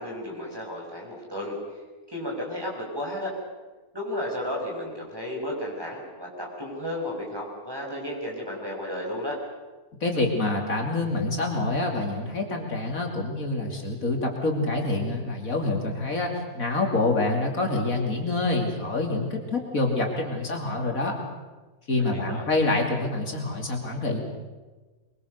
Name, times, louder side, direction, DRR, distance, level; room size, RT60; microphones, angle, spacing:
voice 1, 0.0-1.6 2.1-3.3 3.9-9.4 22.0-22.4, left 1 dB, 15° right, -1 dB, 5.7 m, -33 dB
voice 2, 10.0-16.3 16.5-21.2 21.9-24.2, left 2 dB, 65° left, 1 dB, 3.2 m, -26 dB
23.5 x 23.5 x 6.7 m, 1.3 s
omnidirectional pair, 1.6 m